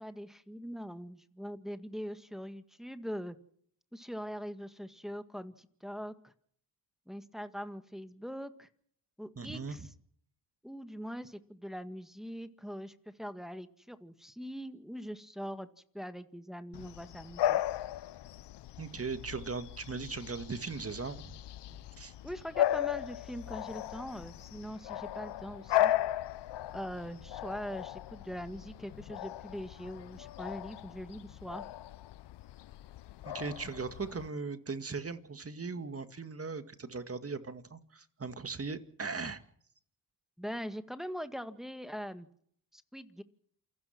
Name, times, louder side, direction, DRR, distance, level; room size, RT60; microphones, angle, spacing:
voice 1, 0.0-3.4 3.9-6.3 7.1-8.7 9.2-9.9 10.6-15.7 15.9-17.6 22.2-25.9 26.7-31.7 40.4-42.3 42.7-43.2, equal, ahead, 9 dB, 1.9 m, -42 dB
voice 2, 9.4-9.9 18.8-21.4 21.7-22.1 33.2-39.4, right 4 dB, 30° right, 9 dB, 2.2 m, -39 dB
Bark / Bird vocalization bird call bird song, 16.7-34.3, left 12 dB, 65° left, 0.8 m, -36 dB
28.5 x 16.0 x 6.1 m, 0.62 s
supercardioid pair, 60°, 44 cm